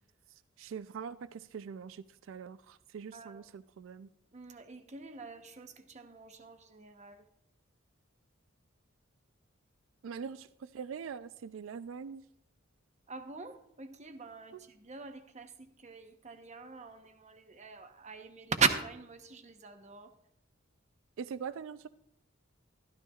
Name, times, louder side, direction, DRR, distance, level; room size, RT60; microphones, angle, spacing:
voice 1, 0.6-4.1 10.0-12.2 14.5-14.6 21.2-21.9, right 6 dB, 75° right, 15 dB, 0.4 m, -43 dB
voice 2, 3.1-3.4 4.3-7.3 13.1-20.1, right 5 dB, 35° right, 7 dB, 0.9 m, -38 dB
13.0 x 12.5 x 2.4 m, 0.76 s
head